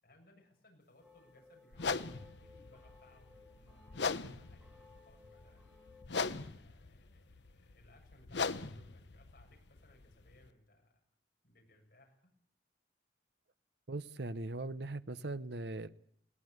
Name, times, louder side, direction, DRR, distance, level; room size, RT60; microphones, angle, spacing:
voice 1, 0.0-5.8 6.2-11.0 11.4-12.3, left 1 dB, 55° left, 1 dB, 7.2 m, -65 dB
sound 1, 1.0-6.1, left 3 dB, 5° right, 6.1 m, -61 dB
sound 2, 1.7-10.5, left 4 dB, 75° left, 0.9 m, -41 dB
voice 2, 13.9-15.9, right 2 dB, 65° right, 14 dB, 0.9 m, -40 dB
21.0 x 18.5 x 8.1 m, 0.65 s
head